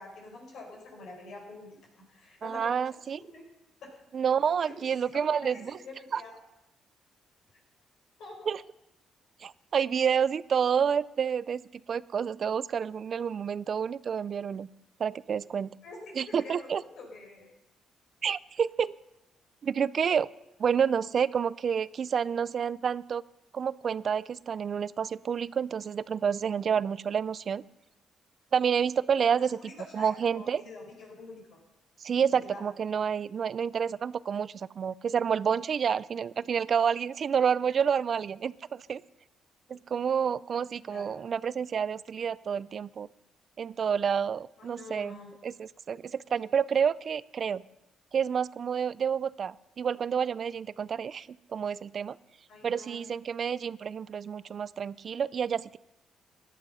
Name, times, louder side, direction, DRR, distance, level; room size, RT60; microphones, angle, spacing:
voice 1, 0.0-2.9 3.3-3.4 4.6-6.4 8.2-8.5 15.8-16.0 16.3-17.5 20.6-20.7 21.0-21.2 29.2-31.6 32.4-32.6 40.9-41.2 44.6-45.3 52.5-53.0, left 3 dB, 75° left, 0 dB, 5.5 m, -46 dB
voice 2, 2.4-3.2 4.1-5.8 6.1-6.2 8.5-8.6 9.4-11.6 11.9-14.7 15.0-15.7 16.2-16.8 18.2-18.9 19.6-20.3 20.6-23.2 23.5-27.6 28.5-30.6 32.0-39.0 39.7-43.1 43.6-47.6 48.1-52.2 52.6-55.8, right 7 dB, 50° right, 20 dB, 0.4 m, -29 dB
16.5 x 11.5 x 5.6 m, 0.90 s
cardioid pair, 90°, 0 cm